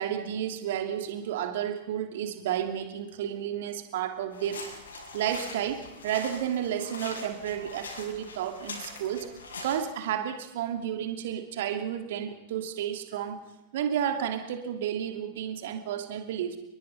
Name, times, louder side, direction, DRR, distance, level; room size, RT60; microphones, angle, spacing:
voice 1, 0.0-4.6 5.1-9.3 9.6-13.4 13.7-16.6, right 9 dB, 55° right, 6 dB, 2.9 m, -31 dB
sound 1, 4.3-9.8, left 3 dB, 70° left, 6.9 m, -42 dB
29.5 x 22.0 x 5.6 m, 0.98 s
figure-of-eight pair, 90°, 0 cm